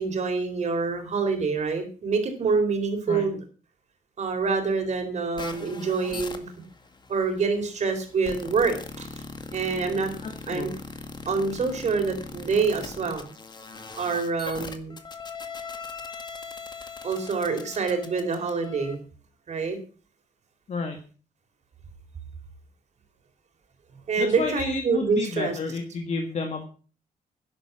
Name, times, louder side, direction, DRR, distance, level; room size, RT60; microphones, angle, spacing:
voice 1, 0.0-3.4 4.2-6.4 7.1-9.1 9.5-10.1 10.5-10.7 11.3-13.3 14.0-15.0 17.0-19.0 19.5-19.8 24.1-25.6, right 4 dB, 50° right, 6 dB, 4.0 m, -26 dB
sound 1, 5.4-19.0, left 4 dB, 30° left, 1.8 m, -40 dB
voice 2, 10.2-10.7 20.7-21.0 24.2-26.6, left 4 dB, 50° left, 4 dB, 2.0 m, -31 dB
11.5 x 10.5 x 6.1 m, 0.39 s
cardioid pair, 130°, 15 cm